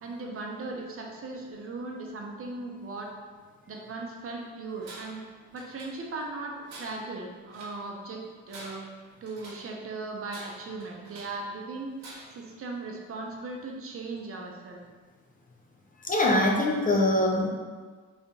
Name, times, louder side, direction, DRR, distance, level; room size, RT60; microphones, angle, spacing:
voice 1, 0.0-3.1 3.7-5.2 5.5-8.8 9.2-11.9 12.3-14.8, right 3 dB, 50° right, 0 dB, 0.8 m, -38 dB
Tools, 4.8-5.3 5.6-6.3 6.7-7.8 8.3-9.7 10.3-11.4 12.0-12.5, right 2 dB, 65° right, 1.4 m, -47 dB
voice 2, 16.0-17.5, left 1 dB, 25° left, -1 dB, 0.8 m, -23 dB
3.6 x 3.4 x 4.1 m, 1.5 s
cardioid pair, 90°, 30 cm